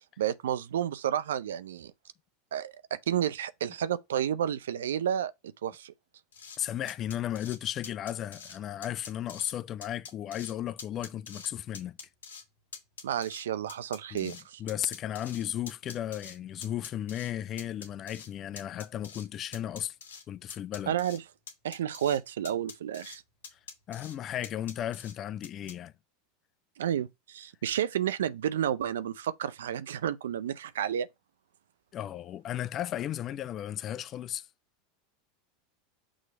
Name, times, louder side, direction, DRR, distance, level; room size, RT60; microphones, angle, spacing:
voice 1, 0.2-1.9 2.5-5.3 5.6-5.9 13.0-14.6 20.9-21.2 21.6-23.2 26.8-31.1, right 10 dB, 80° right, 0.5 m, -31 dB
sound 1, 6.3-6.6 6.9-7.6 7.8-8.6 8.8-9.5 9.8-10.5 10.8-11.5 11.7-12.4 12.7-14.4 14.7-16.4 16.6-17.3 17.6-18.3 18.6-19.3 19.5-20.2 20.5-21.2 21.5-22.2 22.4-23.2 23.4-24.1 24.4-25.1 25.4-25.7, left 6 dB, 85° left, 1.8 m, -45 dB
voice 2, 6.6-12.0 14.1-20.0 20.3-20.9 23.5-23.6 23.9-25.9 31.9-34.5, left 11 dB, 40° left, 0.5 m, -35 dB
6.3 x 3.2 x 5.4 m
hypercardioid pair, 95°, 0 cm